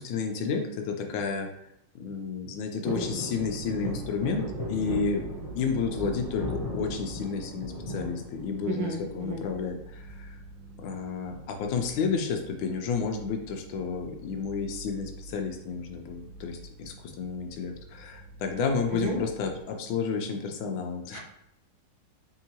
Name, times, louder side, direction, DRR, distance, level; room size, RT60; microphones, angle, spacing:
voice 1, 0.0-1.5 1.9-10.4 10.8-21.2, left 5 dB, 80° left, 4 dB, 1.4 m, -31 dB
sound 1, 2.8-9.0 9.4-10.1 11.3-11.8 12.0-12.1 12.4-12.7 13.5-14.4 14.9-15.0, left 1 dB, 60° left, 0.3 m, -37 dB
sound 2, 3.3-19.6, right 1 dB, 65° right, 1.6 m, -47 dB
voice 2, 8.7-9.4 18.9-19.2 21.1-21.2, right 3 dB, 85° right, 0 dB, 1.6 m, -33 dB
4.4 x 3.7 x 2.8 m, 0.79 s
omnidirectional pair, 2.1 m